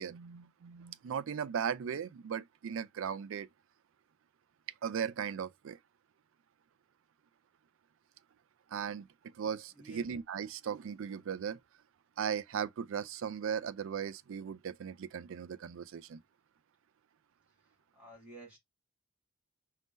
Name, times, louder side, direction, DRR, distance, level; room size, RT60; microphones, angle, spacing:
voice 1, 0.0-3.5 4.8-5.8 8.7-9.1 9.3-11.6 12.2-16.2, right 7 dB, 60° right, 0.3 m, -37 dB
voice 2, 9.7-10.1 17.9-18.6, right 2 dB, 5° right, 2.0 m, -51 dB
5.1 x 2.7 x 3.6 m
head